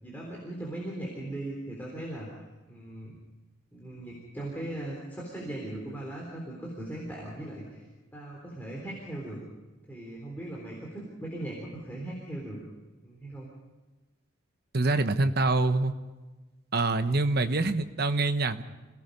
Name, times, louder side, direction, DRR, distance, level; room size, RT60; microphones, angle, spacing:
voice 1, 0.0-2.3 2.7-3.1 3.7-7.8 8.1-9.4 9.9-12.6 13.0-13.5, right 1 dB, 10° left, -3 dB, 3.7 m, -38 dB
voice 2, 14.7-15.9 16.7-18.6, right 2 dB, 50° right, 9 dB, 1.0 m, -25 dB
27.5 x 17.5 x 5.4 m, 1.2 s
head